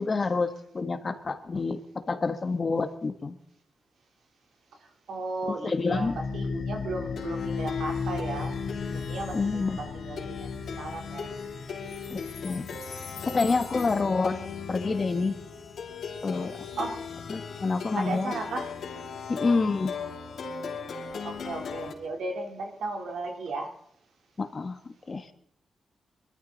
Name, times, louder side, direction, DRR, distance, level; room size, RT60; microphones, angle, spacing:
voice 1, 0.0-1.8 2.1-3.4 5.4-6.2 9.3-9.8 12.1-12.7 13.2-14.4 14.7-15.4 16.2-16.5 17.3-18.3 19.3-19.9 24.4-24.8 25.1-25.3, left 4 dB, 35° left, 9 dB, 1.4 m, -28 dB
voice 2, 5.1-11.3 16.8-17.0 18.0-18.7 21.2-23.7, right 3 dB, 90° right, 2 dB, 3.5 m, -35 dB
Plucked string instrument, 5.9-21.9, left 5 dB, 80° left, 3.2 m, -36 dB
23.0 x 13.5 x 4.0 m, 0.66 s
wide cardioid pair, 110°, 0 cm